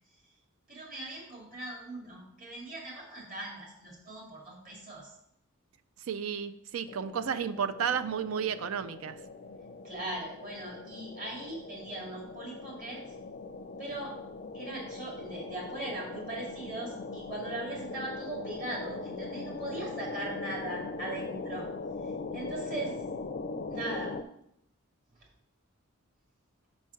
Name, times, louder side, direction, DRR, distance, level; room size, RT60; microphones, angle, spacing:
voice 1, 0.7-5.1 9.8-13.0 13.8-14.1 14.5-21.6 22.3-23.0 23.7-24.1, right 2 dB, 40° right, -2 dB, 2.2 m, -39 dB
voice 2, 6.1-9.2, right 7 dB, 85° right, 12 dB, 0.4 m, -32 dB
sound 1, 6.9-24.2, left 3 dB, 45° left, 0.4 m, -41 dB
5.3 x 4.8 x 5.7 m, 0.76 s
head